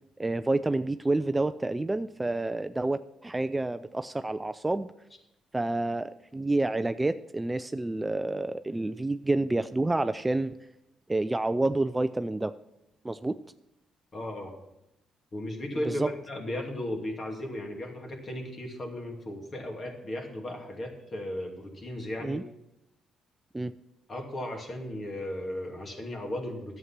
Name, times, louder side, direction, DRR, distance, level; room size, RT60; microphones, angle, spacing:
voice 1, 0.2-4.9 5.5-10.6 11.1-12.5 13.0-13.4 15.8-16.1 22.2-22.4 23.5-23.7, right 2 dB, 15° right, 12 dB, 0.4 m, -29 dB
voice 2, 14.1-14.5 15.3-22.4 24.1-26.8, left 1 dB, 40° left, 2 dB, 2.5 m, -36 dB
11.0 x 8.0 x 5.9 m, 0.86 s
cardioid pair, 90°, 0 cm